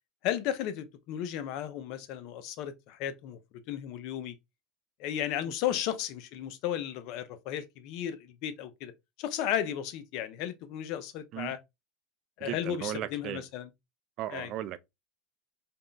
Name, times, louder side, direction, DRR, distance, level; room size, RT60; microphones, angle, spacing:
voice 1, 0.2-3.4 3.7-4.3 5.0-8.9 9.2-11.6 12.4-13.7 14.3-14.5, left 10 dB, 60° left, 0.6 m, -34 dB
voice 2, 12.4-13.4 14.2-14.8, right 12 dB, 50° right, 0.4 m, -36 dB
3.7 x 2.1 x 3.9 m
supercardioid pair, 115°, 0 cm